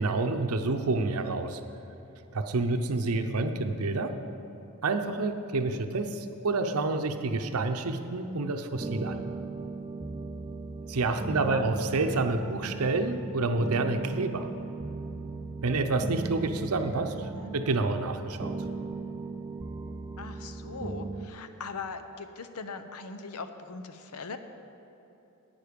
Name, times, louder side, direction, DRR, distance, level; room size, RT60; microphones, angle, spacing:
voice 1, 0.0-1.6 2.3-4.2 4.8-9.2 10.9-14.5 15.6-18.6, right 3 dB, 75° right, 7 dB, 0.7 m, -28 dB
sound 1, 8.7-21.3, right 3 dB, 15° right, 0.4 m, -38 dB
voice 2, 11.2-11.7 17.1-17.6 20.2-24.4, left 4 dB, 80° left, 9 dB, 0.7 m, -40 dB
11.5 x 9.0 x 5.2 m, 3.0 s
head